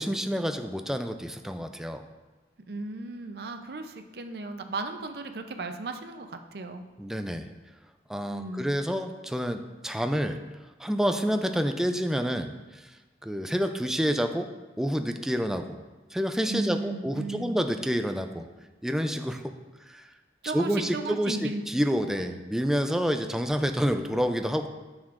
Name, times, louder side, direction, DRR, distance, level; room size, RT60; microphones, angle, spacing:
voice 1, 0.0-2.0 7.0-7.5 8.1-10.4 10.8-12.9 13.2-14.5 14.8-15.8 16.1-18.5 18.8-19.5 19.9-20.0 20.4-24.7, equal, 5° right, 6 dB, 0.3 m, -28 dB
voice 2, 2.7-6.9 8.3-8.7 16.5-17.6 20.4-21.6 22.2-22.3, right 3 dB, 60° right, 7 dB, 0.6 m, -35 dB
9.3 x 6.3 x 2.5 m, 1.2 s
head